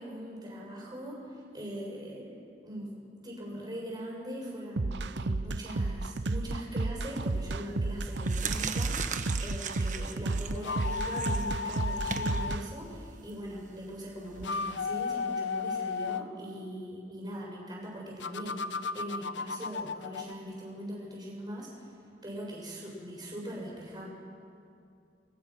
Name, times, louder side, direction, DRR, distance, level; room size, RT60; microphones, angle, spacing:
voice 1, 0.0-2.3 2.6-2.9 3.2-21.9 22.2-24.1, equal, 25° right, -3 dB, 6.3 m, -41 dB
sound 1, 4.8-12.6, right 2 dB, 70° right, 0.7 m, -32 dB
sound 2, 7.2-7.5 8.0-14.5, right 5 dB, 45° right, 1.3 m, -39 dB
sound 3, 10.5-12.6 14.3-16.3 18.2-20.3, left 5 dB, 90° left, 0.7 m, -34 dB
29.5 x 21.5 x 6.1 m, 2.5 s
head